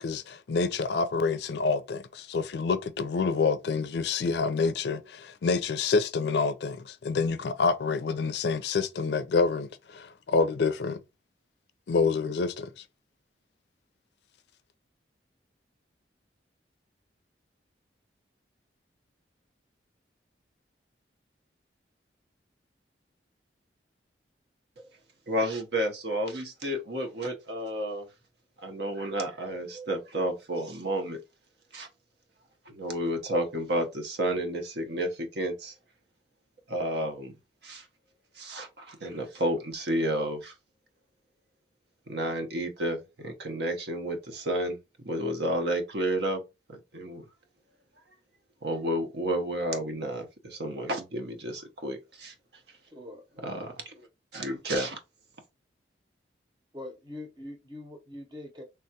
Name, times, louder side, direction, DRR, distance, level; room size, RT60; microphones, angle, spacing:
voice 1, 0.0-11.0 11.9-12.8, left 4 dB, 65° left, 0.4 m, -27 dB
voice 2, 25.3-28.1 28.6-31.2 31.7-31.9 32.7-35.7 36.7-37.3 37.6-37.8 38.4-40.5 42.1-44.8 45.0-46.4 46.7-47.2 48.6-52.3 53.4-53.9 54.3-55.0, right 1 dB, 70° right, 0.7 m, -31 dB
voice 3, 52.9-53.7 56.7-58.6, left 1 dB, 25° right, 0.8 m, -43 dB
3.3 x 2.3 x 2.7 m
head